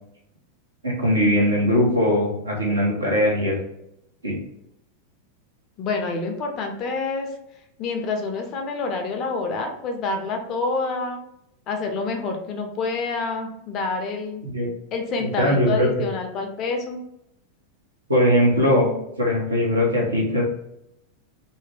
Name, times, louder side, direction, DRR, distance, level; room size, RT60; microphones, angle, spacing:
voice 1, 0.8-3.6 4.2-4.4 14.4-14.7 15.4-16.1 18.1-18.9 19.2-20.4, equal, 75° right, -1 dB, 0.8 m, -20 dB
voice 2, 5.8-7.3 7.8-11.2 11.7-14.4 14.9-17.0, left 3 dB, 35° left, 3 dB, 0.5 m, -27 dB
2.5 x 2.1 x 3.3 m, 0.80 s
figure-of-eight pair, 90°, 0 cm